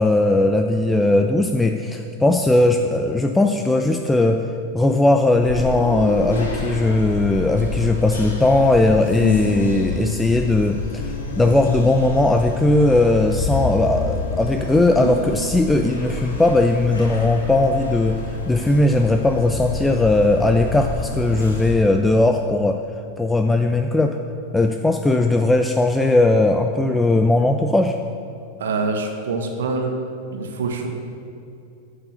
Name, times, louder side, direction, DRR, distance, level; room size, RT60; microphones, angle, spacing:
voice 1, 0.0-4.5 4.7-22.8 23.2-24.2 24.5-28.0, left 2 dB, 10° left, 5 dB, 0.4 m, -18 dB
sound 1, 5.4-21.7, left 2 dB, 70° left, 1.6 m, -28 dB
voice 2, 28.6-30.0 30.3-30.9, right 3 dB, 60° right, 4 dB, 1.2 m, -25 dB
9.5 x 7.0 x 6.7 m, 2.7 s
figure-of-eight pair, 90°, 0 cm